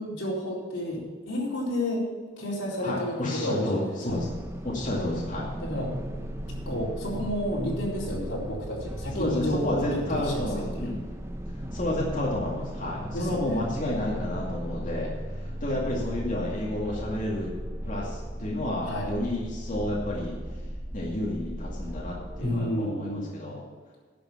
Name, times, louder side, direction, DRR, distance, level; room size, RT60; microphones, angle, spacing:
voice 1, 0.0-2.0 2.4-4.2 5.6-5.9 6.7-10.9 13.1-13.6 18.9-19.1 22.4-23.3, left 1 dB, 85° left, -4 dB, 4.3 m, -31 dB
voice 2, 2.8-4.3 4.6-5.5 9.1-11.0 11.7-17.5 17.9-20.4 20.9-23.6, left 1 dB, 45° left, -4 dB, 2.3 m, -31 dB
sound 1, 4.1-22.5, equal, 15° right, 1.0 m, -36 dB
11.0 x 7.0 x 7.4 m, 1.5 s
head